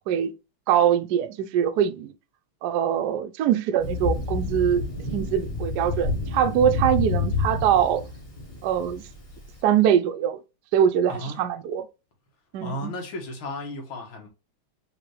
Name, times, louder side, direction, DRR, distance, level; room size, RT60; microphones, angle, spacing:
voice 1, 0.7-2.1 2.6-4.8 5.1-8.0 8.6-9.0 9.6-10.4 10.7-11.9 12.5-12.9, right 9 dB, 75° right, 0.9 m, -23 dB
Thunder, 3.8-9.5, left 3 dB, 20° left, 1.1 m, -29 dB
voice 2, 11.1-11.4 12.6-14.3, left 1 dB, 85° left, 2.3 m, -34 dB
5.2 x 3.2 x 3.2 m
omnidirectional pair, 2.2 m